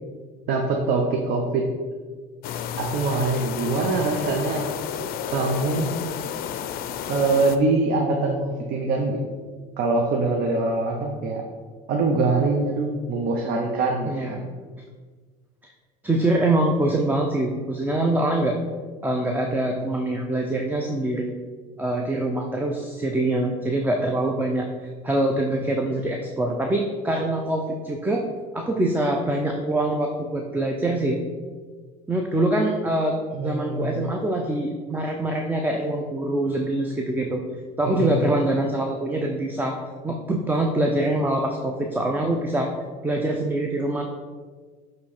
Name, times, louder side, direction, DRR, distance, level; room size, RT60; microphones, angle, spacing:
voice 1, 0.5-1.6 2.8-4.7 5.3-5.9 7.1-9.2 9.8-11.4 11.9-14.5 33.3-34.0 37.8-38.3, right 3 dB, 60° right, 1 dB, 0.9 m, -24 dB
sound 1, 2.4-7.6, left 9 dB, 55° left, 0.5 m, -31 dB
voice 2, 16.0-18.6 19.0-21.3 21.8-28.2 28.5-31.2 32.1-37.4 37.8-39.8 40.0-42.7 43.0-44.0, right 1 dB, 10° right, 2 dB, 0.6 m, -24 dB
7.1 x 3.2 x 4.3 m, 1.5 s
supercardioid pair, 85°, 18 cm